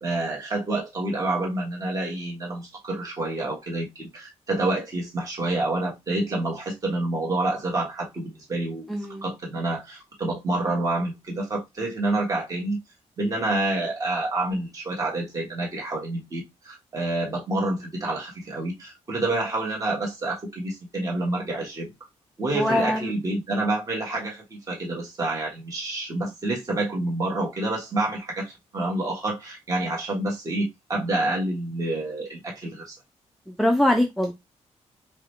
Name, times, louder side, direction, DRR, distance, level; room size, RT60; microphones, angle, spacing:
voice 1, 0.0-8.9 9.2-12.8 13.2-21.9 22.4-33.0, right 2 dB, 30° right, 1.2 m, -28 dB
voice 2, 8.9-9.3 22.5-23.1 33.5-34.3, left 1 dB, ahead, 0.3 m, -23 dB
4.7 x 2.1 x 3.1 m
wide cardioid pair, 180°, 12 cm